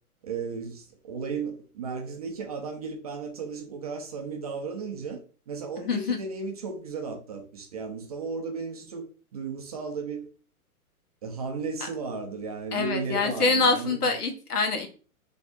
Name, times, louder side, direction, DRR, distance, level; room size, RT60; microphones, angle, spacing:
voice 1, 0.2-10.3 11.2-14.0, right 4 dB, 30° right, 0.4 m, -35 dB
voice 2, 5.8-6.2 12.7-14.9, left 3 dB, 85° left, 1.0 m, -25 dB
4.2 x 2.7 x 2.5 m
hypercardioid pair, 125°, 45 cm